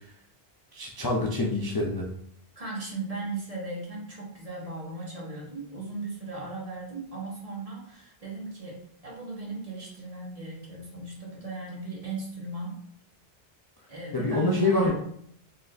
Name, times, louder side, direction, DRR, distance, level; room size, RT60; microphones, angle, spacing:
voice 1, 0.7-2.1 14.1-14.9, left 3 dB, 30° left, -4 dB, 0.5 m, -26 dB
voice 2, 2.6-8.8 9.0-12.8 13.9-14.9, right 3 dB, 35° right, -4 dB, 1.3 m, -37 dB
4.3 x 3.5 x 2.5 m, 0.68 s
omnidirectional pair, 1.0 m